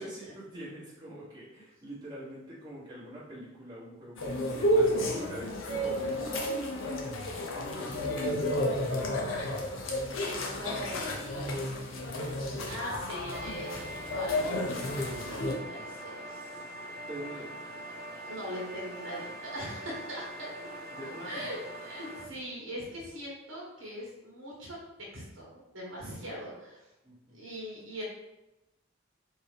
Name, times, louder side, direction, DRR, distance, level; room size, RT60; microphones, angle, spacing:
voice 1, 0.0-6.6 17.1-17.5 20.9-21.5 27.0-27.4, right 1 dB, 20° right, -9 dB, 1.2 m, -44 dB
sound 1, 4.2-15.6, left 1 dB, 70° left, 0.7 m, -31 dB
voice 2, 7.7-8.9 9.2-9.7 10.2-14.5 15.2-16.5 18.2-20.5 21.2-26.9 27.3-28.0, equal, 70° right, -5 dB, 1.5 m, -42 dB
sound 2, 13.3-22.2, right 1 dB, 50° right, 0.5 m, -43 dB
4.4 x 2.7 x 3.3 m, 0.96 s
head